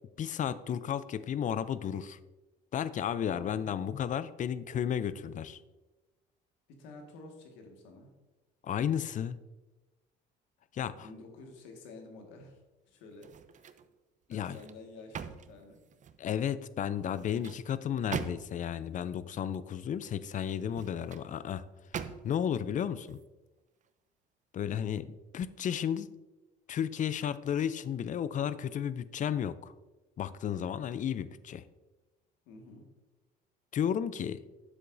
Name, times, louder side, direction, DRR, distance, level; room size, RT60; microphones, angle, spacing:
voice 1, 0.2-2.2 2.7-5.6 8.6-9.4 10.7-11.1 14.3-14.6 16.2-21.6 22.2-23.2 24.5-25.1 25.3-26.1 26.7-29.7 30.2-31.6 33.7-34.4, left 9 dB, 40° left, 15 dB, 0.5 m, -33 dB
voice 2, 3.2-3.5 6.7-8.1 10.9-12.6 12.9-13.7 14.3-15.8 24.6-24.8 32.5-32.8, left 3 dB, 80° left, 3 dB, 1.8 m, -50 dB
sound 1, 13.1-13.9 14.3-16.3 17.0-18.7 20.5-21.3 21.9-22.5 23.0-23.2, right 7 dB, 40° right, 0.6 m, -42 dB
9.7 x 7.6 x 2.7 m, 1.1 s
supercardioid pair, 80°, 19 cm